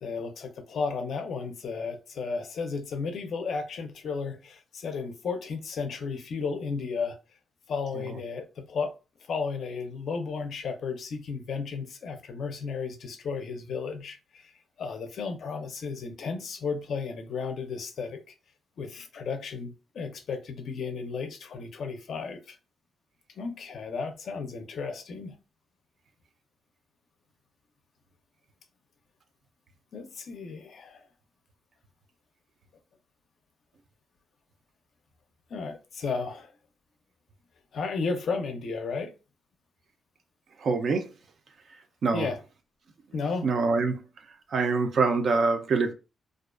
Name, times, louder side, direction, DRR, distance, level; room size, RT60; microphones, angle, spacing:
voice 1, 0.0-7.2 7.7-8.9 9.3-14.5 14.8-18.2 18.8-22.6 23.4-25.4 29.9-31.0 35.5-36.5 37.7-39.1 42.1-42.4 43.1-43.5, left 5 dB, 60° left, 0.4 m, -33 dB
voice 2, 40.6-41.1 42.0-42.3 43.4-44.0 44.5-45.9, right 4 dB, 50° right, 0.4 m, -24 dB
2.4 x 2.2 x 2.4 m
wide cardioid pair, 150°, 0 cm